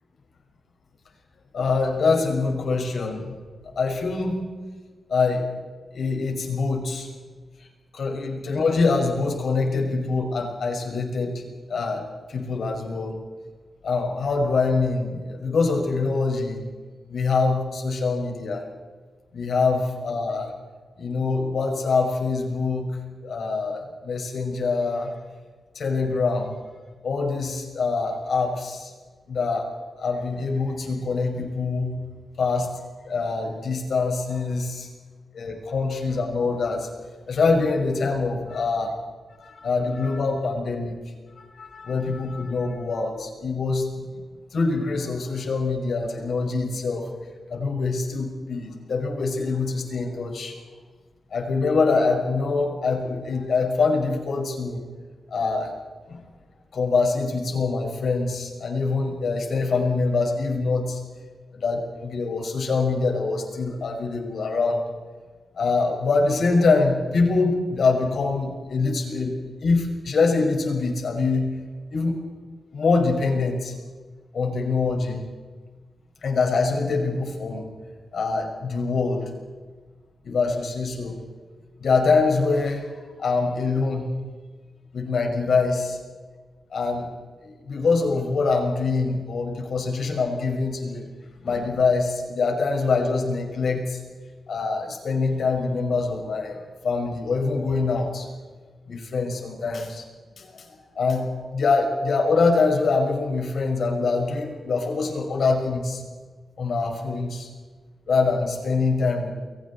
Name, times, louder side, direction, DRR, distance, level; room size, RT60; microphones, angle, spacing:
voice 1, 1.5-3.4 3.8-4.4 5.1-5.5 5.9-7.1 7.9-11.4 11.7-12.0 12.3-13.1 13.8-16.6 17.1-18.6 19.3-20.5 21.0-25.1 25.7-26.5 27.0-28.9 29.3-29.7 30.0-32.0 32.4-34.9 35.3-36.9 37.3-38.9 39.4-41.0 41.4-44.2 44.5-47.0 47.5-50.5 51.3-54.8 55.3-55.7 56.1-56.2 56.7-61.0 61.5-64.8 65.5-69.3 69.6-71.5 71.9-72.2 72.7-73.7 74.3-75.2 76.2-77.7 78.1-79.2 80.2-81.2 81.8-82.9 83.2-84.1 84.9-86.0 86.7-87.1 87.4-91.1 91.4-94.0 94.5-96.6 96.8-98.3 98.9-100.0 100.4-106.0 106.6-107.5 108.1-109.3, left 4 dB, 65° left, 2 dB, 5.6 m, -24 dB
29.5 x 22.5 x 4.3 m, 1.4 s
wide cardioid pair, 125°, 0 cm